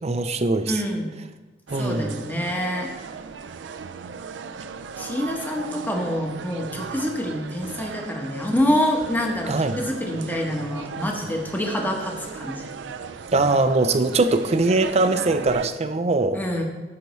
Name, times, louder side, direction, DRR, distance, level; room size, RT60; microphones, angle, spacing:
voice 1, 0.0-0.7 1.7-2.2 9.5-9.8 13.3-16.4, right 3 dB, 35° right, 9 dB, 0.5 m, -21 dB
voice 2, 0.7-1.1 1.8-2.9 5.0-12.6 16.3-16.6, equal, 10° left, 1 dB, 1.1 m, -26 dB
sound 1, 1.7-15.7, right 5 dB, 90° right, 0.4 m, -37 dB
13.0 x 5.8 x 3.1 m, 1.2 s
head